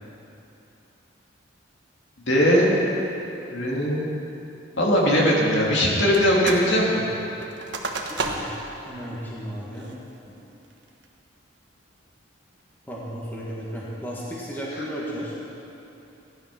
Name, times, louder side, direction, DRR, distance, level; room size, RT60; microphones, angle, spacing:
voice 1, 2.3-2.8 3.5-4.1 4.8-7.1, equal, 65° left, -4 dB, 2.7 m, -20 dB
sound 1, 6.1-6.7 7.0-8.7 9.1-9.2 9.7-10.1 10.6-11.0, right 3 dB, 65° right, 1.3 m, -32 dB
voice 2, 8.2-9.9 10.3-10.4 12.8-15.4, equal, 10° left, -6 dB, 1.9 m, -34 dB
15.5 x 11.0 x 6.1 m, 3.0 s
head